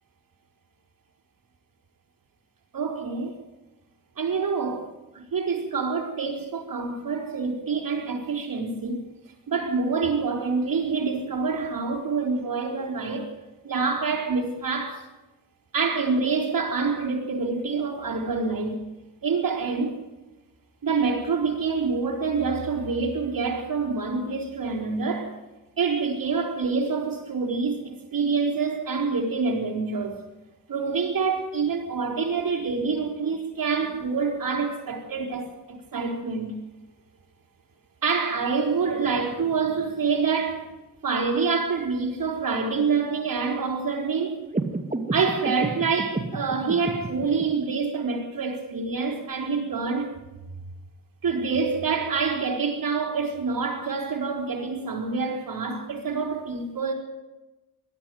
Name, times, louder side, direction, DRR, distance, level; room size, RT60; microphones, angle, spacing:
voice 1, 2.7-3.4 4.2-4.9 5.1-9.0 9.5-13.3 13.6-15.1 15.7-18.8 19.2-20.0 20.8-25.3 25.8-30.2 30.7-36.5 38.0-40.7 41.0-44.5 45.1-50.1 51.2-56.9, right 4 dB, 85° right, 4.8 m, -26 dB
sound 1, 44.5-47.4, right 2 dB, 25° right, 2.3 m, -31 dB
21.5 x 13.0 x 9.4 m
wide cardioid pair, 100°, 33 cm